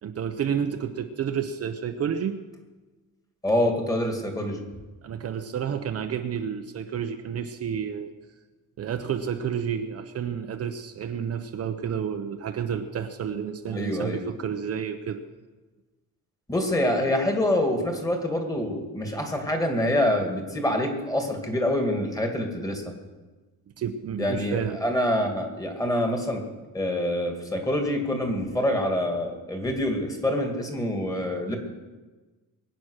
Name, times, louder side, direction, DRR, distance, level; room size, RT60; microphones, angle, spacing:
voice 1, 0.0-2.4 5.0-8.1 8.8-15.2 23.8-24.8, right 8 dB, 45° right, 6 dB, 0.9 m, -30 dB
voice 2, 3.4-4.6 13.7-14.2 16.5-22.9 24.2-26.4 26.7-31.6, left 1 dB, 10° left, 3 dB, 2.3 m, -26 dB
22.5 x 9.2 x 6.5 m, 1.3 s
cardioid pair, 155°, 34 cm